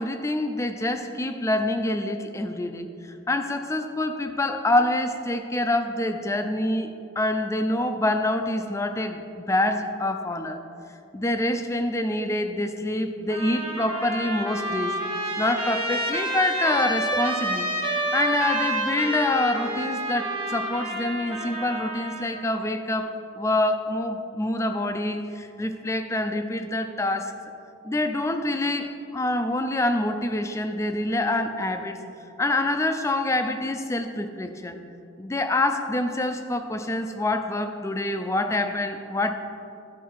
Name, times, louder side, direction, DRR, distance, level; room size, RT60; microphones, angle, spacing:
voice 1, 0.0-10.6 11.1-15.0 15.4-27.3 27.8-32.0 32.4-34.8 35.2-39.3, left 1 dB, 15° left, 7 dB, 0.4 m, -26 dB
Trumpet, 13.3-22.4, right 1 dB, 25° right, 1.2 m, -29 dB
12.5 x 4.5 x 4.7 m, 2.6 s
head